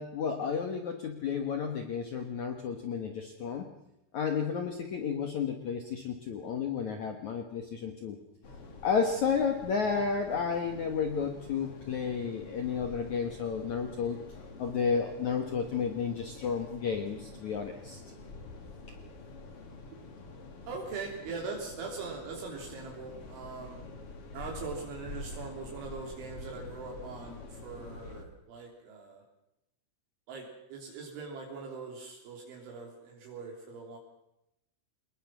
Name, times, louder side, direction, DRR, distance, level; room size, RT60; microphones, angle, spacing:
voice 1, 0.0-3.7 4.1-8.2 8.8-14.2 14.6-18.0, left 6 dB, 80° left, 5 dB, 1.6 m, -32 dB
sound 1, 8.4-28.2, left 3 dB, 40° left, 2.3 m, -47 dB
voice 2, 20.7-23.8 24.3-29.2 30.3-34.0, right 4 dB, 70° right, 0 dB, 5.5 m, -41 dB
27.5 x 20.5 x 6.1 m, 0.88 s
omnidirectional pair, 5.8 m